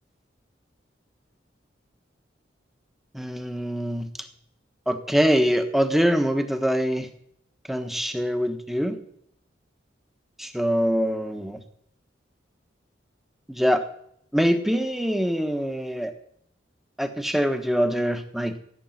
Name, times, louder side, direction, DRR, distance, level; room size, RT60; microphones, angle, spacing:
voice 1, 3.1-4.1 4.9-7.1 7.7-9.0 10.4-11.6 13.5-13.8 14.3-16.1 17.0-18.6, equal, ahead, 7 dB, 1.3 m, -24 dB
16.0 x 7.1 x 9.6 m, 0.68 s
head